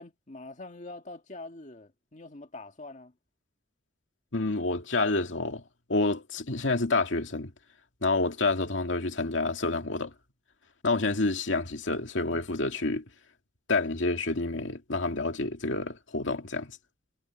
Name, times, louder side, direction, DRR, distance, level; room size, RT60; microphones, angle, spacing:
voice 1, 0.0-3.1, left 2 dB, 40° left, 1.8 m, -44 dB
voice 2, 4.3-5.6 5.9-7.5 8.0-10.1 10.8-13.0 13.7-16.7, left 3 dB, 90° left, 2.2 m, -28 dB
head